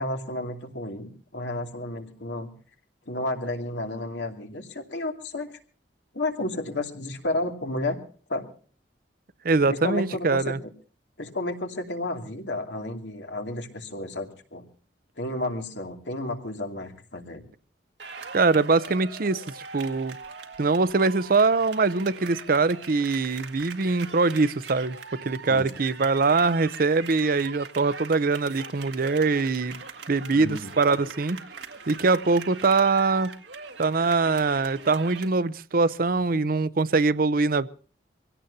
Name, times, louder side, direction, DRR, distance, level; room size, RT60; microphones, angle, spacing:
voice 1, 0.0-2.5 3.1-5.5 6.1-8.0 8.3-8.5 9.7-10.7 11.2-14.7 15.2-17.4 25.5-25.7 30.3-30.7, left 2 dB, 90° left, 2.6 m, -32 dB
voice 2, 9.4-10.6 18.3-19.4 19.7-20.2 20.6-25.0 25.2-29.8 30.1-31.4 31.9-33.3 33.8-37.7, right 3 dB, 55° right, 0.7 m, -23 dB
sound 1, 18.0-35.3, right 5 dB, 85° right, 1.8 m, -42 dB
25.0 x 17.0 x 2.8 m
head